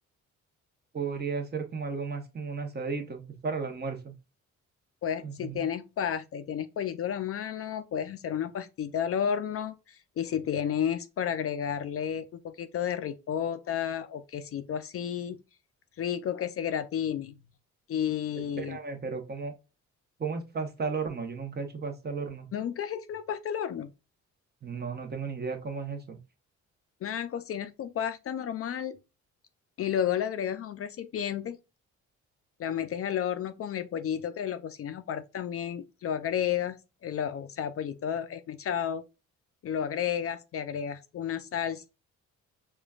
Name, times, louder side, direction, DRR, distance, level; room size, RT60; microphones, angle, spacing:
voice 1, 0.9-4.1 5.2-5.7 18.6-19.5 20.2-22.5 24.6-26.2, right 5 dB, 35° right, 0.9 m, -34 dB
voice 2, 5.0-15.4 16.0-17.3 17.9-18.8 22.5-23.9 27.0-29.0 29.8-31.6 32.6-36.8 37.0-39.0 39.6-41.9, left 9 dB, 50° left, 0.4 m, -32 dB
5.0 x 2.3 x 2.4 m
cardioid pair, 90°, 30 cm